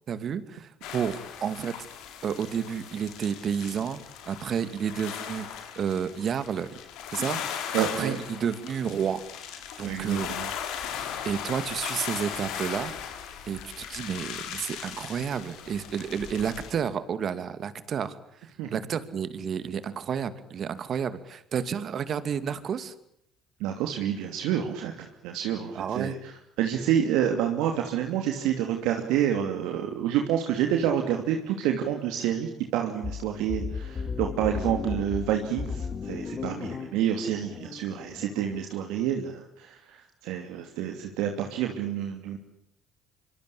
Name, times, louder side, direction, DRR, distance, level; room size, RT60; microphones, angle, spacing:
voice 1, 0.1-1.8 2.2-4.0 4.3-6.7 7.1-9.2 9.8-10.3 11.2-12.9 13.5-18.2 18.7-22.9 25.7-26.2, right 7 dB, 50° right, 12 dB, 2.5 m, -31 dB
sound 1, 0.8-16.7, left 8 dB, 70° left, 4.4 m, -38 dB
voice 2, 7.7-8.2 9.8-10.5 18.6-18.8 23.6-42.4, right 10 dB, 75° right, 3 dB, 2.8 m, -28 dB
sound 2, 33.0-38.7, left 5 dB, 40° left, 3.3 m, -35 dB
25.5 x 25.0 x 8.6 m, 0.76 s
hypercardioid pair, 60°, 0 cm